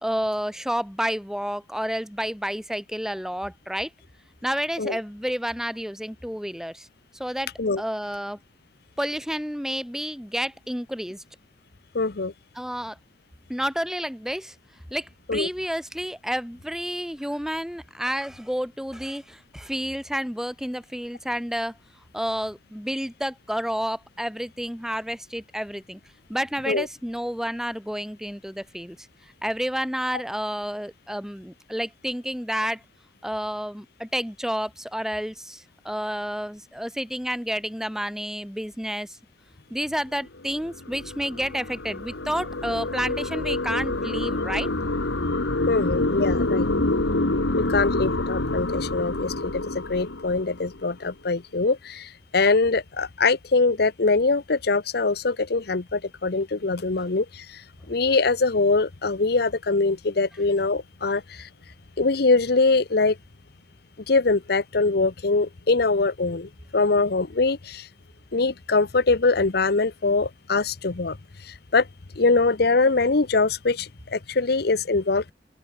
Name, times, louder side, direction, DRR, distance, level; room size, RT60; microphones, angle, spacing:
voice 1, 0.0-3.9 4.4-6.9 7.2-7.5 7.8-8.4 9.0-11.2 12.5-13.0 13.5-14.5 14.9-21.8 22.1-26.0 26.3-29.0 29.4-32.8 33.2-39.2 39.7-44.7 57.0-57.1, equal, 5° right, 4.6 m, -30 dB
voice 2, 11.9-12.3 15.3-15.5 26.7-26.9 45.7-46.7 47.6-61.5 62.0-63.2 64.1-67.9 68.3-71.2 71.4-71.9 72.2-75.3, left 3 dB, 60° left, 0.8 m, -23 dB
sound 1, 40.3-50.9, left 2 dB, 85° left, 1.8 m, -27 dB
open air
head